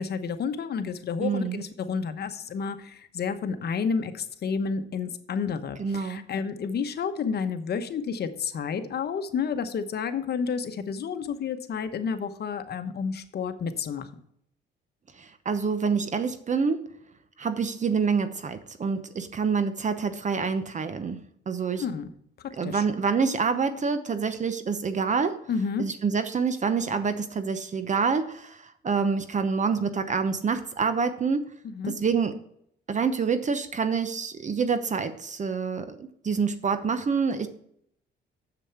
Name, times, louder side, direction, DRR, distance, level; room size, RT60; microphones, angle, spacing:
voice 1, 0.0-14.1 21.7-22.1 22.6-22.9 25.5-25.9 31.6-31.9, left 6 dB, 55° left, 9 dB, 1.0 m, -30 dB
voice 2, 1.2-1.6 5.8-6.2 15.2-16.8 17.4-21.2 21.5-21.8 22.6-25.4 25.8-31.5 31.9-32.3 32.9-37.5, right 5 dB, 40° right, 10 dB, 0.8 m, -27 dB
7.1 x 6.9 x 5.8 m, 0.71 s
cardioid pair, 90°, 20 cm